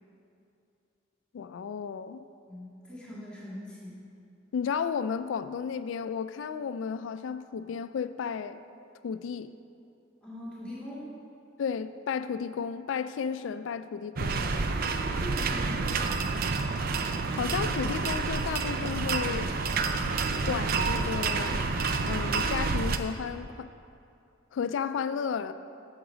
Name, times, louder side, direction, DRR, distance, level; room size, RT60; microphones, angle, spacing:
voice 1, 1.3-2.2 4.5-8.6 9.0-9.5 11.6-14.5 17.4-19.5 20.4-21.6 22.1-23.7 24.5-25.5, left 6 dB, 80° left, 13 dB, 0.3 m, -33 dB
voice 2, 2.5-4.0 10.2-11.2 15.2-16.4, equal, 5° left, -9 dB, 2.0 m, -42 dB
sound 1, 14.2-23.0, right 4 dB, 50° right, 0.5 m, -29 dB
8.8 x 7.0 x 5.0 m, 2.6 s
head